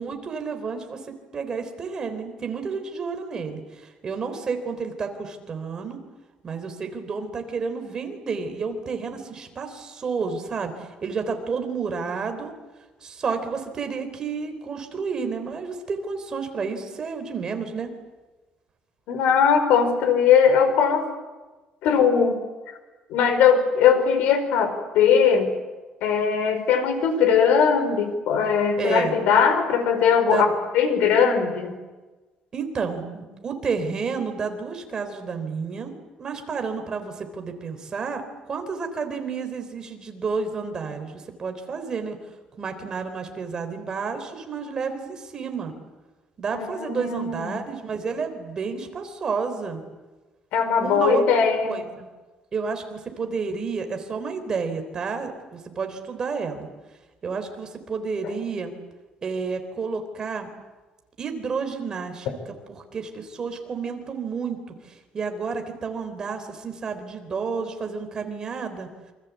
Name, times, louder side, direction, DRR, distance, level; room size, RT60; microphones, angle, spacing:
voice 1, 0.0-6.0 6.4-12.5 13.0-17.9 28.8-29.1 30.3-30.5 32.5-35.9 36.2-42.2 42.6-45.7 46.4-49.8 50.8-52.1 52.5-56.7 57.2-58.7 59.2-60.5 61.2-64.6 64.9-68.9, right 5 dB, 30° right, 6 dB, 3.8 m, -30 dB
voice 2, 19.1-21.1 21.8-22.4 23.1-25.5 26.0-30.5 30.7-31.7 46.5-47.6 50.5-51.8, left 7 dB, 90° left, 9 dB, 5.1 m, -20 dB
28.0 x 25.5 x 8.4 m, 1.2 s
cardioid pair, 170°, 3 cm